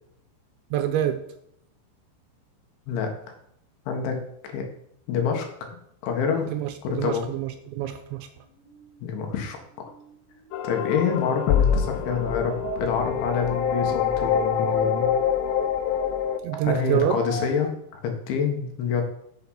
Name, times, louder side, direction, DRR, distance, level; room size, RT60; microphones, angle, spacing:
voice 1, 0.7-1.2 6.5-8.3 16.4-17.2, right 11 dB, 80° right, 8 dB, 2.8 m, -27 dB
voice 2, 3.9-4.2 4.5-4.7 5.1-5.5 6.0-6.5 6.8-7.3 9.0-9.6 10.6-15.1 16.6-19.0, left 6 dB, 70° left, 3 dB, 3.8 m, -26 dB
sound 1, 8.6-9.6 9.9-17.7, right 5 dB, 55° right, 2.6 m, -38 dB
sound 2, 10.5-16.4, left 8 dB, 90° left, 3.2 m, -25 dB
8.8 x 7.8 x 5.7 m, 0.72 s
omnidirectional pair, 5.7 m